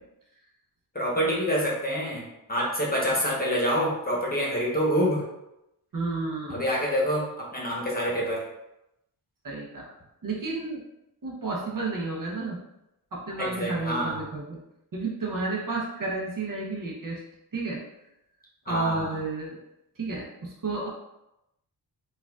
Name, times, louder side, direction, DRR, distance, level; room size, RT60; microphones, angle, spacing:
voice 1, 0.9-2.2 2.5-5.3 6.5-8.4 13.4-14.2 18.7-19.2, equal, 20° left, -4 dB, 1.0 m, -26 dB
voice 2, 5.9-6.7 9.4-9.9 10.2-10.8 11.2-12.6 13.1-14.6 14.9-17.2 17.5-17.8 18.7-19.6 20.0-20.9, right 3 dB, 50° right, -2 dB, 0.8 m, -31 dB
4.5 x 2.5 x 2.3 m, 0.88 s
wide cardioid pair, 105°, 41 cm